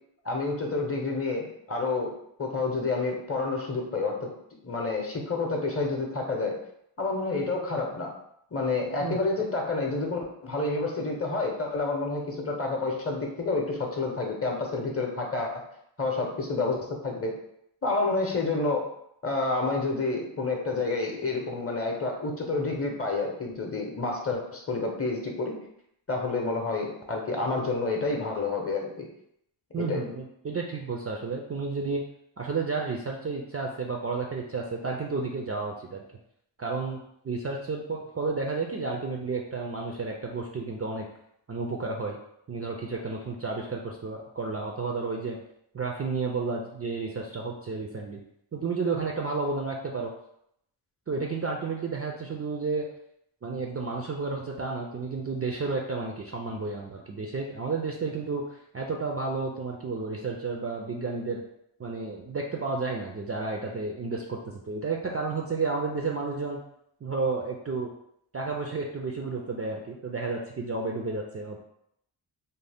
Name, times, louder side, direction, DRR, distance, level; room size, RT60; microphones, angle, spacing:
voice 1, 0.2-2.1 2.4-4.3 4.6-6.6 7.0-8.1 8.5-15.6 16.0-17.4 17.8-18.8 19.2-25.6 26.1-29.1 29.8-30.0, left 3 dB, 30° left, 1 dB, 0.7 m, -29 dB
voice 2, 29.7-32.0 32.4-36.0 36.6-41.1 41.5-42.2 42.5-45.4 45.7-48.2 48.5-50.1 51.1-52.9 53.4-61.4 61.8-66.6 67.0-67.9 68.3-71.6, right 4 dB, 30° right, 0 dB, 0.4 m, -31 dB
2.7 x 2.0 x 3.4 m, 0.75 s
cardioid pair, 50°, 49 cm